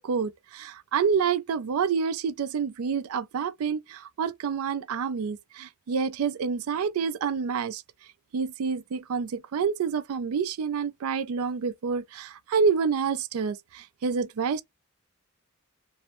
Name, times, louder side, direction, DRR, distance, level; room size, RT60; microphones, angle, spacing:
voice 1, 0.0-7.8 8.3-14.6, right 6 dB, 80° right, 0.4 m, -28 dB
2.6 x 2.0 x 2.9 m
head